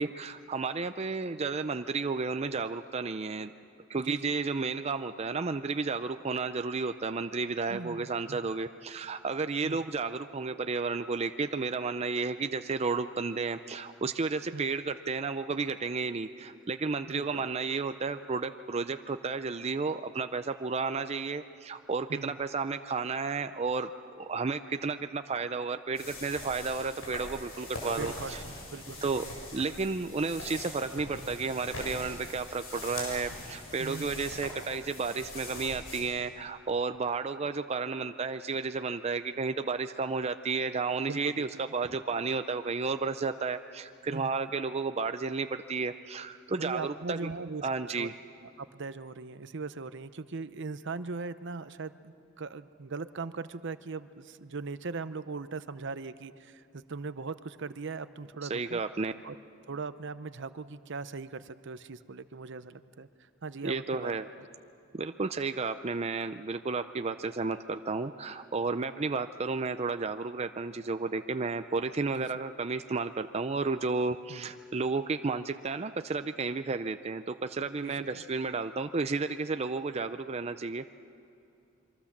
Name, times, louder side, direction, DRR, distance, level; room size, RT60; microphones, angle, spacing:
voice 1, 0.0-3.5 3.9-23.9 24.2-28.4 29.0-29.3 29.5-47.3 47.6-48.1 58.4-59.1 63.6-64.3 64.9-80.9, right 4 dB, 30° right, 9 dB, 0.5 m, -32 dB
voice 2, 7.7-8.5 9.6-9.9 14.5-14.7 17.1-17.4 22.1-22.4 28.0-29.1 33.8-34.4 41.1-41.6 44.1-44.5 46.6-47.7 47.9-48.1 48.6-58.8 59.2-59.4 59.7-63.1 63.4-64.1 64.4-64.5 72.1-72.3 74.3-74.5 77.8-78.2, right 4 dB, 60° right, 13 dB, 0.8 m, -40 dB
sound 1, 25.9-36.0, left 2 dB, 90° left, 7.3 m, -42 dB
26.5 x 23.5 x 7.3 m, 2.6 s
head